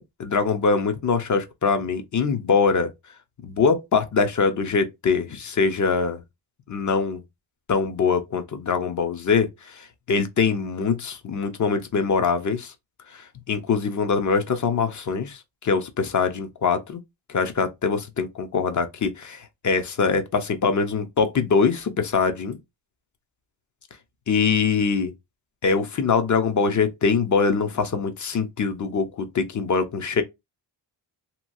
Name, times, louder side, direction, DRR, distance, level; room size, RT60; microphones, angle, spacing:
voice 1, 0.2-2.9 3.4-6.2 6.7-7.2 7.7-12.7 13.1-17.0 17.3-22.6 24.3-25.1 25.6-30.2, left 5 dB, 40° left, 0.7 m, -23 dB
2.9 x 2.3 x 2.6 m
cardioid pair, 85°, 47 cm